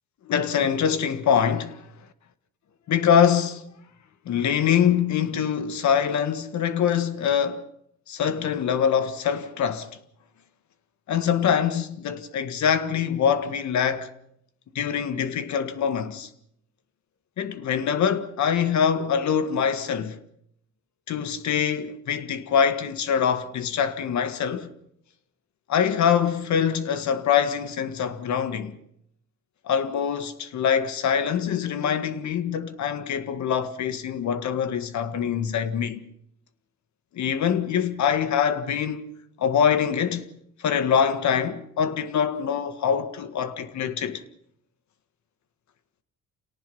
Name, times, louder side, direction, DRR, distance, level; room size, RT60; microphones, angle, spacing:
voice 1, 0.2-1.7 2.9-3.6 4.2-7.6 8.1-9.9 11.1-14.1 14.7-16.3 17.4-20.2 21.1-24.7 25.7-28.8 29.6-36.0 37.1-39.0 39.4-40.3 40.6-44.2, left 8 dB, 70° left, 1.7 m, -24 dB
28.0 x 18.0 x 5.5 m
cardioid pair, 90°, 30 cm